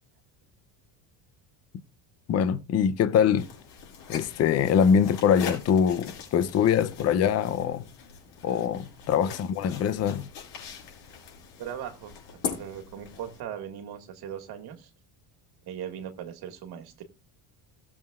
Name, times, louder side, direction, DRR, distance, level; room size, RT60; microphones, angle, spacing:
voice 1, 2.3-3.5 4.1-7.8 8.4-10.3, left 8 dB, 35° left, 0.6 m, -23 dB
sound 1, 3.3-13.4, left 7 dB, 65° left, 5.2 m, -41 dB
voice 2, 11.6-12.2 12.4-14.9 15.6-17.1, right 9 dB, 55° right, 2.0 m, -39 dB
18.0 x 7.3 x 2.4 m
cardioid pair, 145°, 47 cm